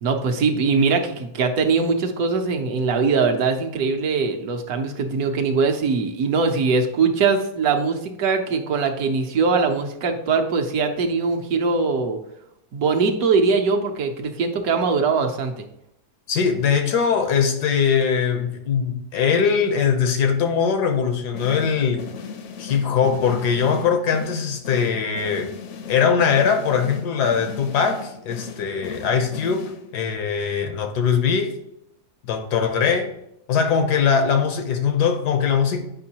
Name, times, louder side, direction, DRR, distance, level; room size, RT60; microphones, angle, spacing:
voice 1, 0.0-12.2 12.7-15.6, right 4 dB, 70° right, 1.2 m, -21 dB
voice 2, 16.3-22.1 22.6-25.5 25.9-31.5 32.3-33.1 33.5-35.9, left 6 dB, 90° left, 1.4 m, -21 dB
sound 1, 21.3-30.1, left 5 dB, 65° left, 0.8 m, -37 dB
8.5 x 5.2 x 2.8 m
omnidirectional pair, 1.7 m